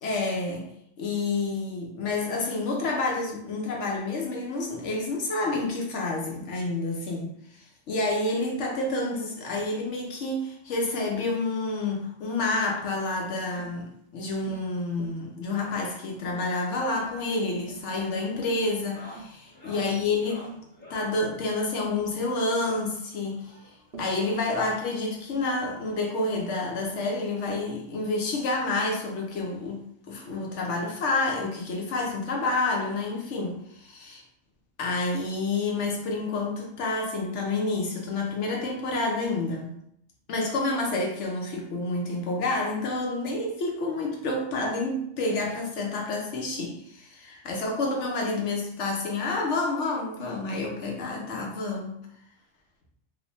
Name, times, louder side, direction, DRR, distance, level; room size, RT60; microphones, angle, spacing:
voice 1, 0.0-0.7 1.0-7.6 7.9-20.5 20.9-23.5 24.0-34.2 34.8-39.7 40.3-52.0, left 2 dB, 75° left, 0 dB, 1.0 m, -29 dB
Tap, 12.8-13.0 13.6-13.8 14.5-14.7 15.0-15.2 15.7-15.9 16.2-16.5 17.0-17.2 17.7-17.9 18.3-18.6 19.2-19.4 19.8-20.1 20.5-20.7 21.1-21.3 22.0-22.3 22.7-22.9 23.9-24.2 25.3-25.5 26.3-26.6 26.9-27.2 27.5-27.7, right 4 dB, 60° right, 0.7 m, -45 dB
sound 1, 18.7-21.2 22.6-23.9 25.0-25.1 25.3-25.4 25.9-26.0 27.3-27.4 28.7-28.8, equal, 10° left, 0.7 m, -49 dB
3.0 x 2.1 x 4.1 m, 0.72 s
omnidirectional pair, 1.2 m